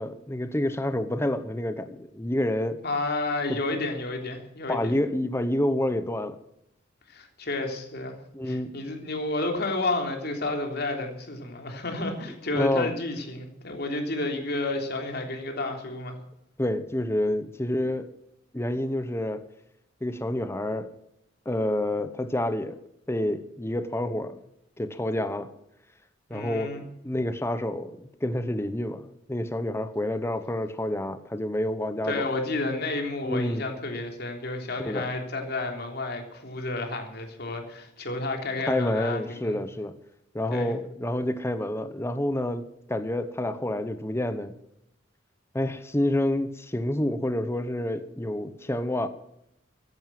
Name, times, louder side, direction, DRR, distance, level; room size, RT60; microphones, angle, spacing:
voice 1, 0.0-2.8 3.5-3.6 4.7-6.4 8.3-8.7 12.5-12.9 16.6-18.1 18.5-19.4 20.0-20.9 21.4-22.8 23.1-24.4 24.8-25.5 26.3-32.3 33.2-33.6 34.8-35.1 38.6-39.9 40.3-44.5 45.5-49.1, left 1 dB, 15° left, 10 dB, 0.9 m, -28 dB
voice 2, 2.8-5.0 7.1-8.2 8.5-16.2 26.3-26.8 32.0-39.6 40.5-40.8, left 2 dB, 55° left, 3 dB, 3.3 m, -31 dB
15.0 x 11.0 x 7.7 m, 0.78 s
head